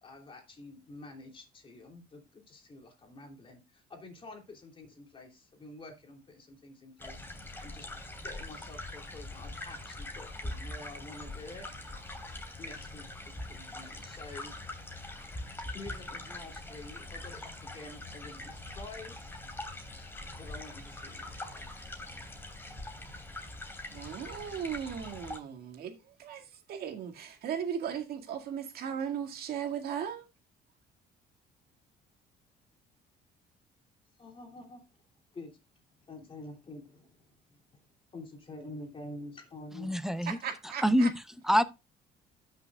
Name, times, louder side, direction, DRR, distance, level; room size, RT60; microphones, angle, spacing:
voice 1, 0.0-7.9 8.2-11.7 12.6-14.5 15.7-19.3 20.4-21.7 34.2-34.8 35.3-35.6 36.0-37.4 37.7-37.8 38.1-39.9, left 2 dB, 30° left, 3.0 m, -48 dB
sound 1, 7.0-25.4, left 2 dB, 15° left, 2.9 m, -43 dB
voice 2, 23.9-25.9 26.2-26.4 26.7-30.3 40.3-41.1, right 8 dB, 65° right, 2.1 m, -37 dB
voice 3, 39.8-40.4 40.6-41.6, equal, ahead, 0.7 m, -27 dB
13.0 x 6.6 x 2.4 m
cardioid pair, 110°, 17 cm